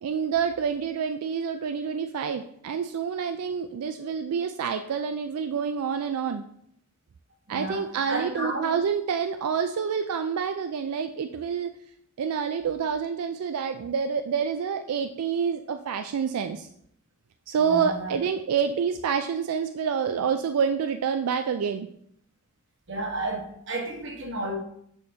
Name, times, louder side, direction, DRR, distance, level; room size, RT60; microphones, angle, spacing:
voice 1, 0.0-6.4 7.5-11.7 12.2-16.7 17.5-21.9, right 6 dB, 90° right, 7 dB, 0.4 m, -27 dB
voice 2, 7.5-8.8 17.6-18.1 22.9-24.5, right 2 dB, 55° right, 2 dB, 1.2 m, -32 dB
6.4 x 6.3 x 2.8 m, 0.68 s
head